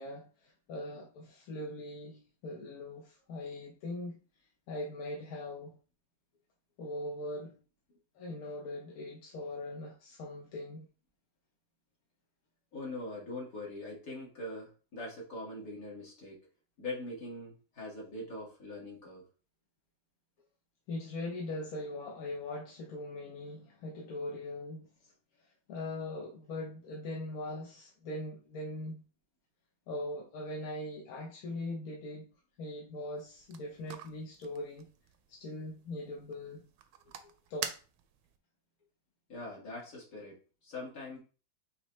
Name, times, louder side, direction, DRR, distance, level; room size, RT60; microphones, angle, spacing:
voice 1, 0.0-4.2 4.7-5.8 6.8-7.6 8.1-10.9 20.9-25.1 25.4-29.0 29.9-32.3 32.6-34.9 35.3-36.6 37.5-37.7, left 1 dB, 60° left, 1.0 m, -41 dB
voice 2, 12.7-16.4 16.8-19.2 37.1-37.2 39.3-41.2, left 2 dB, 45° left, 2.2 m, -42 dB
sound 1, 33.2-38.4, right 9 dB, 75° right, 1.2 m, -47 dB
5.2 x 3.3 x 3.1 m
omnidirectional pair, 2.1 m